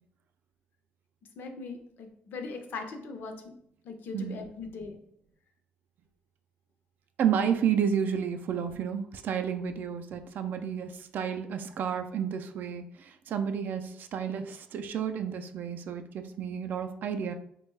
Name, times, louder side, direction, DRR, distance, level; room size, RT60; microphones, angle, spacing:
voice 1, 1.4-3.5 3.8-5.0, left 4 dB, 60° left, 5 dB, 0.5 m, -40 dB
voice 2, 7.2-17.3, right 8 dB, 55° right, 7 dB, 0.3 m, -31 dB
3.3 x 2.2 x 3.2 m, 0.71 s
cardioid pair, 135°, 4 cm